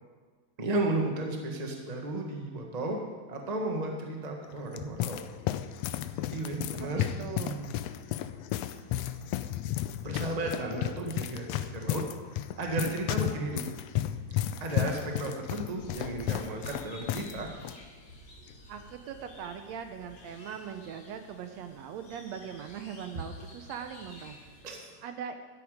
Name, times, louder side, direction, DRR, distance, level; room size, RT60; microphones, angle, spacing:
voice 1, 0.6-3.0 3.3-5.2 6.3-7.1 7.4-7.7 10.0-12.0 12.6-13.6 14.6-17.5 24.6-25.0, right 2 dB, 20° right, 1 dB, 1.1 m, -33 dB
sound 1, 4.4-17.3 17.6-17.8 18.5-18.8, left 13 dB, 80° left, 1.6 m, -33 dB
voice 2, 6.7-7.7 18.7-24.5 25.0-25.4, right 8 dB, 75° right, 7 dB, 1.9 m, -41 dB
sound 2, 15.7-24.6, equal, 45° left, 3.7 m, -51 dB
13.0 x 12.5 x 5.0 m, 1.5 s
omnidirectional pair, 3.3 m